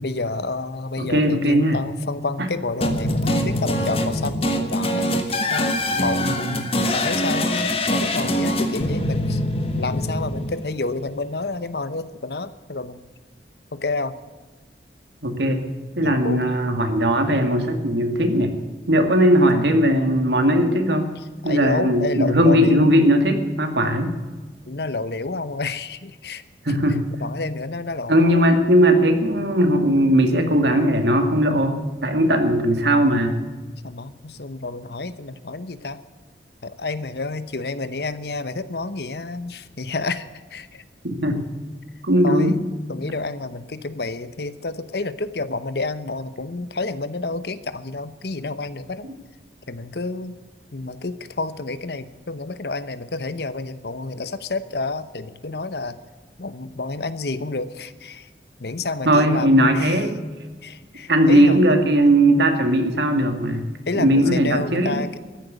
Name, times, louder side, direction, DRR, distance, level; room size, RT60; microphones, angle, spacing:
voice 1, 0.0-9.4 9.8-13.0 13.7-14.2 16.0-16.4 21.2-23.0 23.8-24.0 24.7-26.4 27.2-28.5 33.8-36.0 36.6-40.8 42.2-42.6 42.9-49.1 49.7-50.4 50.7-56.0 56.4-58.3 58.6-60.0 60.6-61.6 63.9-65.2, left 3 dB, 65° left, 13 dB, 0.9 m, -29 dB
voice 2, 1.0-1.8 2.4-2.5 6.2-6.5 15.2-15.6 16.0-18.5 18.9-21.1 21.4-24.1 26.7-27.0 28.1-33.4 41.0-41.4 42.0-42.6 59.1-60.2 61.1-63.7 63.9-65.0, equal, 80° right, 6 dB, 2.2 m, -18 dB
sound 1, 2.8-11.0, left 1 dB, 35° left, 1.5 m, -24 dB
14.0 x 10.5 x 8.1 m, 1.3 s
head